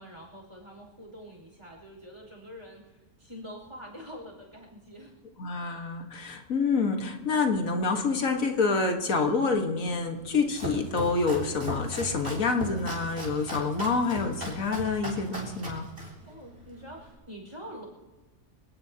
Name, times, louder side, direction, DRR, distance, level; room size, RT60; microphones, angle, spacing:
voice 1, 0.0-5.1 16.2-17.9, equal, 20° right, 0 dB, 5.2 m, -45 dB
voice 2, 5.4-15.9, left 4 dB, 90° left, 3 dB, 1.9 m, -27 dB
Domestic sounds home sounds, 10.2-17.1, equal, 50° right, 4.3 m, -38 dB
25.5 x 18.0 x 2.9 m, 1.2 s
omnidirectional pair, 1.4 m